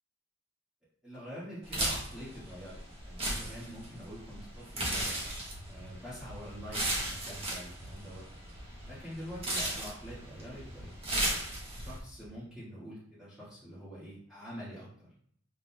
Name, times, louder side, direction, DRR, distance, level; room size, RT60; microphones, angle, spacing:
voice 1, 1.0-5.2 5.7-8.3 8.9-11.4 11.8-15.1, equal, 5° right, -12 dB, 1.7 m, -46 dB
sound 1, 1.6-12.0, right 1 dB, 30° right, 1.3 m, -36 dB
sound 2, 5.2-12.3, equal, 40° left, 1.5 m, -51 dB
5.6 x 3.7 x 2.2 m, 0.65 s
head